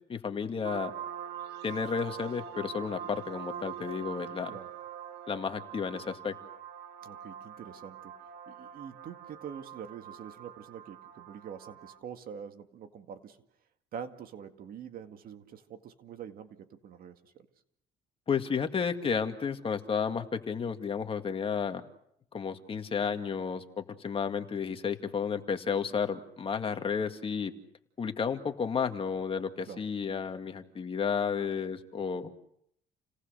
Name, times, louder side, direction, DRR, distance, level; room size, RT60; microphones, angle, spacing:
voice 1, 0.1-0.9 1.6-4.5 5.3-6.3 18.3-21.8 22.3-27.5 28.0-32.3, left 6 dB, 35° left, 6 dB, 2.0 m, -32 dB
sound 1, 0.6-12.0, right 9 dB, 80° right, 2.3 m, -44 dB
voice 2, 7.0-13.4 13.9-17.5 29.7-29.8, right 8 dB, 60° right, 7 dB, 2.0 m, -45 dB
29.5 x 18.5 x 6.6 m, 0.72 s
cardioid pair, 110°, 17 cm